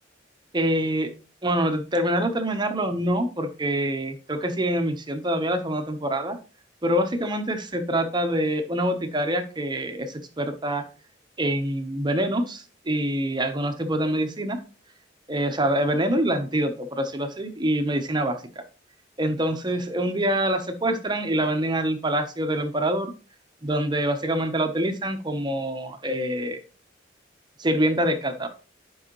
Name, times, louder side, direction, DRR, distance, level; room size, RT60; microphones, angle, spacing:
voice 1, 0.5-1.1 1.4-6.4 6.8-10.8 11.4-14.6 15.3-18.4 19.2-23.1 23.6-26.6 27.6-28.5, right 1 dB, 25° right, 7 dB, 1.0 m, -25 dB
8.5 x 5.5 x 3.1 m, 0.35 s
head